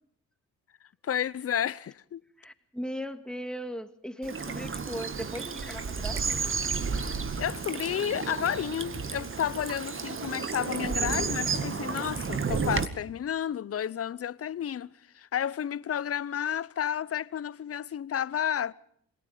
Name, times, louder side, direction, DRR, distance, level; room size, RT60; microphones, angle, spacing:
voice 1, 1.0-2.2 7.4-18.7, left 9 dB, 45° left, 0.8 m, -31 dB
voice 2, 2.4-6.4, equal, ahead, 2.2 m, -38 dB
Bird vocalization bird call bird song / Stream, 4.2-12.9, right 5 dB, 40° right, 2.0 m, -32 dB
27.0 x 19.0 x 5.1 m
supercardioid pair, 65°, 33 cm